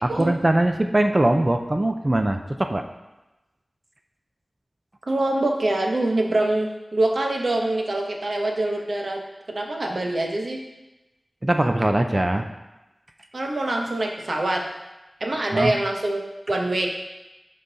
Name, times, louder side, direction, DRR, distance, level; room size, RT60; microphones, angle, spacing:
voice 1, 0.0-2.8 11.4-12.5 15.4-15.7, right 1 dB, 35° right, 6 dB, 0.5 m, -21 dB
voice 2, 5.1-9.2 9.5-10.6 13.3-14.7 15.2-16.9, right 2 dB, 70° right, 1 dB, 1.1 m, -24 dB
11.5 x 3.8 x 4.0 m, 1.0 s
wide cardioid pair, 65°, 0 cm